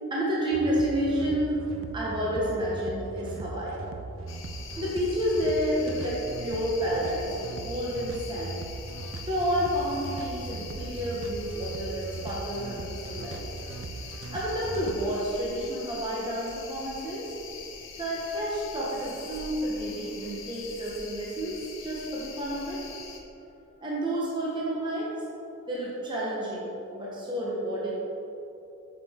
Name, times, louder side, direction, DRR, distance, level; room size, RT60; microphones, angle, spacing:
voice 1, 0.1-3.8 4.8-8.6 9.3-13.5 14.3-17.3 18.0-22.8 23.8-25.1 25.7-27.9, equal, 20° right, -6 dB, 1.1 m, -30 dB
sound 1, 0.5-15.1, right 3 dB, 65° right, 0.5 m, -39 dB
sound 2, 4.3-23.2, left 5 dB, 65° left, 0.8 m, -43 dB
7.6 x 6.4 x 3.7 m, 2.9 s
head